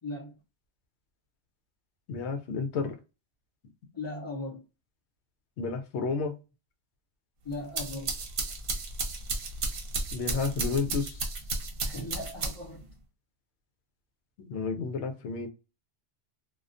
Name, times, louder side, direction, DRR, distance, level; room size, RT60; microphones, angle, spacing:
voice 1, 0.0-0.3 3.9-4.6 7.4-8.2 11.8-12.8, left 2 dB, 30° left, 0.7 m, -38 dB
voice 2, 2.1-3.0 5.6-6.4 10.1-11.2 14.5-15.5, left 4 dB, 80° left, 0.9 m, -31 dB
sound 1, 7.5-12.8, right 3 dB, 60° right, 0.8 m, -33 dB
2.3 x 2.2 x 2.5 m
omnidirectional pair, 1.1 m